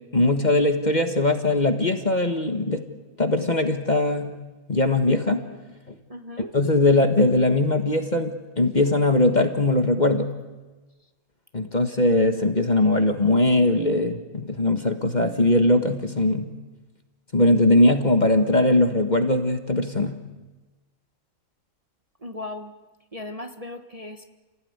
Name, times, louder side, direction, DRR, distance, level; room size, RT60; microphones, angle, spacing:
voice 1, 0.1-2.9 3.2-4.4 4.7-5.4 5.9-6.0 6.5-10.4 11.5-16.6 17.3-20.2, left 2 dB, 30° left, 6 dB, 1.5 m, -20 dB
voice 2, 6.1-6.5 22.2-22.7 23.1-24.2, left 2 dB, 25° right, 5 dB, 1.3 m, -37 dB
29.0 x 17.5 x 9.6 m, 1.2 s
omnidirectional pair, 1.6 m